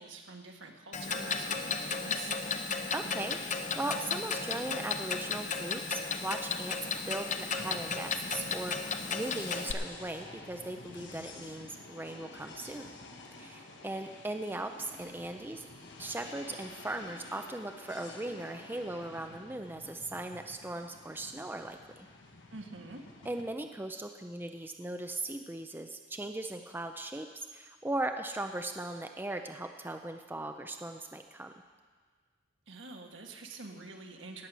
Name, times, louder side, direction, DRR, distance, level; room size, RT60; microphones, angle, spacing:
voice 1, 0.0-2.3 13.7-13.9 22.5-23.0 32.7-34.5, right 3 dB, 75° right, 3 dB, 1.6 m, -46 dB
Clock, 0.9-9.7, left 5 dB, 40° left, 0.8 m, -34 dB
voice 2, 2.9-6.8 7.1-13.0 13.3-15.7 16.0-22.1 23.2-31.5, right 2 dB, 10° right, 5 dB, 0.5 m, -38 dB
sound 1, 7.5-23.4, left 3 dB, 65° left, 1.4 m, -50 dB
17.0 x 8.5 x 6.2 m, 1.5 s
head